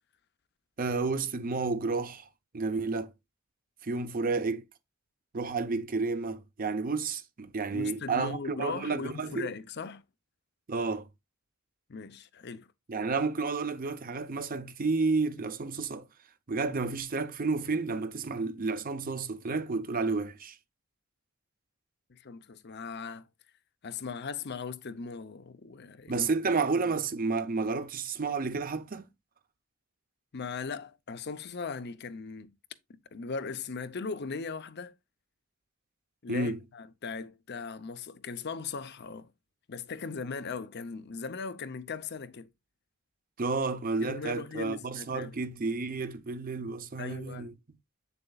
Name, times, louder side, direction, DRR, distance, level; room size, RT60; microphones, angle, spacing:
voice 1, 0.8-2.3 2.5-3.1 3.8-4.6 5.3-9.5 10.7-11.1 12.9-16.1 16.5-20.6 26.1-29.1 36.3-36.6 43.4-47.5, right 4 dB, 45° right, 0.7 m, -31 dB
voice 2, 7.7-10.0 11.9-12.7 22.1-23.3 23.8-26.3 30.3-32.5 33.1-34.9 36.2-39.3 39.7-42.5 44.0-45.3 47.0-47.5, left 5 dB, 55° left, 0.6 m, -38 dB
7.8 x 6.8 x 2.3 m
head